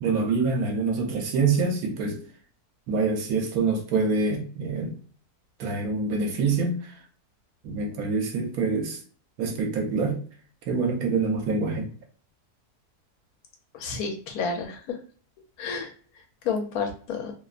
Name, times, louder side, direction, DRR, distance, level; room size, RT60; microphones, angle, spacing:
voice 1, 0.0-2.2 2.9-4.9 5.6-6.9 7.6-9.0 9.4-10.2 10.7-11.9, right 4 dB, 75° right, 1.1 m, -25 dB
voice 2, 13.7-15.0 15.6-15.9 16.4-17.3, left 5 dB, 75° left, 1.1 m, -30 dB
2.7 x 2.1 x 2.3 m
omnidirectional pair, 1.6 m